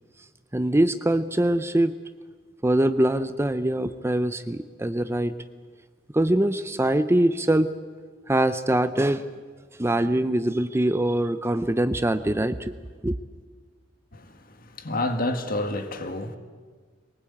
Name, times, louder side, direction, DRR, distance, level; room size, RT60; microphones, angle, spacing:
voice 1, 0.5-2.0 2.6-5.4 6.1-7.7 8.3-9.3 9.8-12.7 13.0-13.2, right 1 dB, 15° right, 0.6 m, -23 dB
voice 2, 14.8-16.4, left 2 dB, 50° left, 1.8 m, -28 dB
23.0 x 20.0 x 8.7 m
head